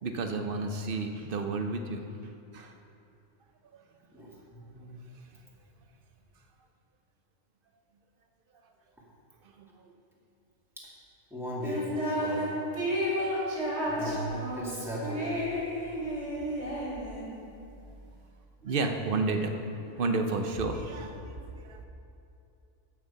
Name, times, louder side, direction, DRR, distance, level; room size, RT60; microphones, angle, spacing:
voice 1, 0.0-2.0 2.5-2.7 9.6-9.9 18.6-19.5 20.0-21.8, right 3 dB, 50° right, 5 dB, 1.0 m, -31 dB
voice 2, 4.1-5.0 11.3-12.5 13.8-15.3, right 1 dB, ahead, -7 dB, 2.5 m, -37 dB
sound 1, 11.6-12.5 12.7-17.4, equal, 75° right, 3.4 m, -32 dB
15.0 x 6.2 x 5.7 m, 2.7 s
omnidirectional pair, 1.3 m